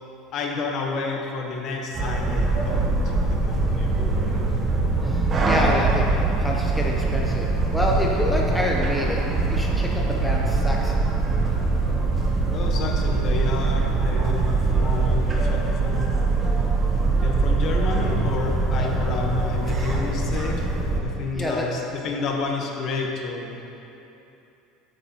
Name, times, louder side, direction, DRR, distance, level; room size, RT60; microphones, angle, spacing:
voice 1, 0.3-3.9 12.5-14.5 14.7-16.1 17.2-20.7 21.0-23.6, left 4 dB, 40° left, 1 dB, 1.0 m, -30 dB
sound 1, 1.9-21.0, right 3 dB, 25° right, 1.0 m, -23 dB
voice 2, 5.0-11.1 18.7-18.9 21.3-21.7, equal, ahead, -3 dB, 0.7 m, -28 dB
12.5 x 7.7 x 2.9 m, 2.9 s
cardioid pair, 150°, 0 cm